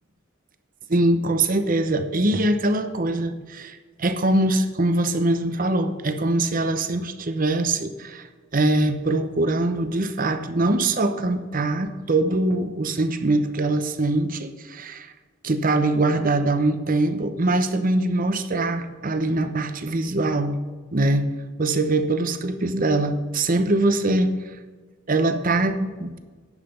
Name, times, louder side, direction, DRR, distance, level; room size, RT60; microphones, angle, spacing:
voice 1, 0.9-8.3 8.5-15.1 15.4-20.6 20.9-21.3 21.6-24.3 25.1-26.2, right 2 dB, 45° right, 10 dB, 0.8 m, -23 dB
10.5 x 5.8 x 6.7 m, 1.4 s
head